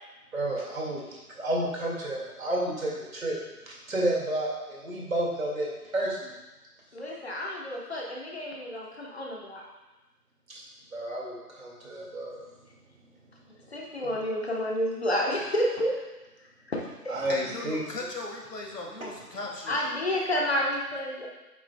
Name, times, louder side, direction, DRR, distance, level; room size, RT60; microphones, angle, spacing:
voice 1, 0.3-1.0 1.4-3.4 3.7-6.3 10.5-10.6 10.9-12.4 17.1-17.8, right 1 dB, 55° right, -3 dB, 2.3 m, -31 dB
voice 2, 6.9-9.6 13.7-15.9 16.7-16.8 17.0-17.2 19.7-21.3, equal, 40° left, -2 dB, 1.2 m, -30 dB
voice 3, 17.2-19.8, left 2 dB, 85° left, 0 dB, 1.9 m, -37 dB
9.1 x 6.0 x 2.3 m, 1.1 s
figure-of-eight pair, 170°, 47 cm